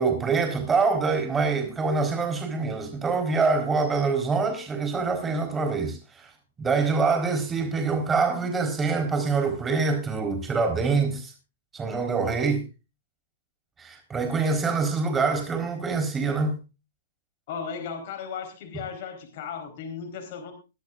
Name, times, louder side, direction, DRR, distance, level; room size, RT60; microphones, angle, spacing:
voice 1, 0.0-6.3 6.6-11.3 11.7-12.6 13.8-16.5, right 4 dB, 15° right, 4.1 m, -25 dB
voice 2, 17.5-20.5, left 6 dB, 50° left, 4.0 m, -36 dB
22.0 x 10.5 x 2.5 m
hypercardioid pair, 135°, 0 cm